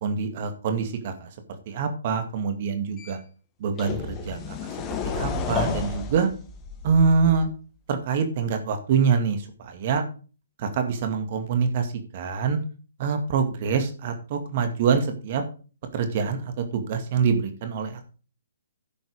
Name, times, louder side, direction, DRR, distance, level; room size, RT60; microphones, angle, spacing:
voice 1, 0.0-1.3 1.7-3.2 3.6-4.7 5.0-6.3 6.8-7.5 7.9-10.0 10.6-12.6 13.0-15.4 15.9-18.1, right 5 dB, 45° right, 7 dB, 2.2 m, -25 dB
sound 1, 3.0-3.1 3.8-7.5, left 5 dB, 20° left, 1.8 m, -31 dB
11.0 x 8.0 x 5.1 m, 0.36 s
figure-of-eight pair, 130°, 0 cm